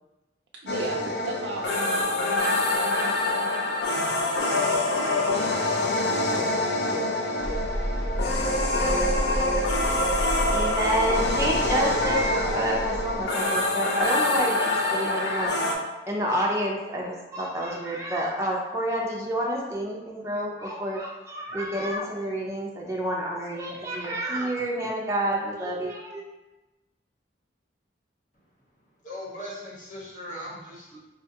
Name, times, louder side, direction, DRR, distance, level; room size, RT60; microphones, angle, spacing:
voice 1, 0.5-4.0, right 3 dB, 85° right, -1 dB, 0.3 m, -39 dB
sound 1, 0.7-15.8, left 2 dB, 65° left, 0.5 m, -25 dB
sound 2, 7.4-13.3, equal, 10° left, 1.0 m, -31 dB
voice 2, 10.5-15.6 16.1-26.2, right 1 dB, 15° right, -3 dB, 0.4 m, -29 dB
voice 3, 29.0-31.0, equal, 45° left, -6 dB, 1.1 m, -39 dB
4.5 x 2.2 x 2.7 m, 1.1 s
head